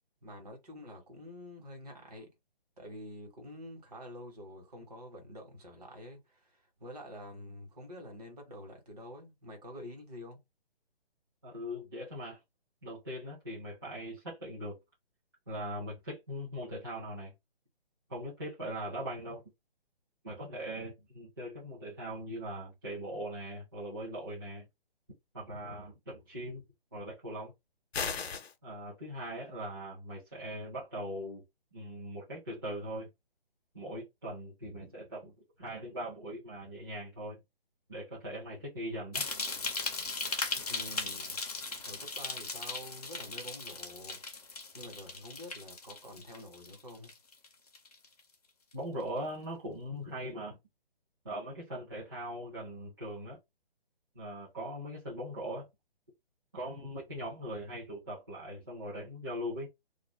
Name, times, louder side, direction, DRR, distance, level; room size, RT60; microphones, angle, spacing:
voice 1, 0.2-2.3 2.8-10.4 40.7-41.4 41.9-44.2 44.7-47.1, equal, 40° right, 1.1 m, -47 dB
voice 2, 11.4-12.4 12.8-14.8 15.5-17.3 18.1-19.4 20.2-24.7 25.3-26.6 26.9-27.5 28.6-31.4 31.7-33.1 33.7-37.4 37.9-39.2 48.7-50.6 51.2-53.4 54.1-55.7 56.5-59.7, equal, 25° right, 0.6 m, -40 dB
sound 1, 27.9-28.5, left 6 dB, 85° left, 0.7 m, -34 dB
sound 2, 39.1-47.5 47.7-48.2 48.7-48.8, left 3 dB, 40° left, 0.5 m, -38 dB
2.4 x 2.1 x 3.1 m
hypercardioid pair, 175°, 31 cm